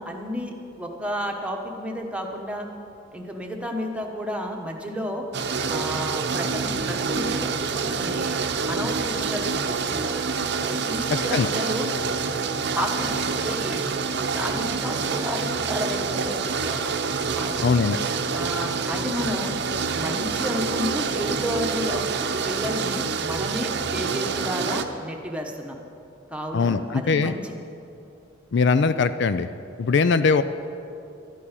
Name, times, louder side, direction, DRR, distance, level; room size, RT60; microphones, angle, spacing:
voice 1, 0.0-2.7 3.1-5.3 5.7-8.4 8.7-10.2 10.7-11.9 12.7-13.8 14.3-16.8 17.4-17.9 18.3-19.5 19.9-25.8 26.3-27.5, equal, 5° right, 1 dB, 1.2 m, -31 dB
sound 1, 5.3-24.8, right 5 dB, 60° right, 0.8 m, -27 dB
voice 2, 11.1-11.5 17.6-18.0 26.5-27.3 28.5-29.5 29.8-30.4, left 4 dB, 60° left, 12 dB, 0.4 m, -21 dB
12.5 x 8.5 x 9.0 m, 2.7 s
head